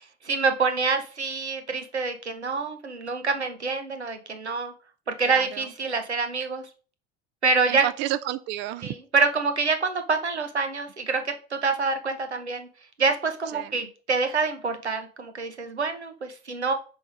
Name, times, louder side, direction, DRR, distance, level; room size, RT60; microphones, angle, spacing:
voice 1, 0.2-4.7 5.2-6.6 7.4-7.8 8.8-12.7 13.0-16.7, right 4 dB, 85° right, 0.8 m, -26 dB
voice 2, 5.2-5.7 7.7-8.9 13.5-13.7, right 14 dB, 35° right, 0.4 m, -31 dB
6.0 x 3.5 x 4.9 m
figure-of-eight pair, 65°, 33 cm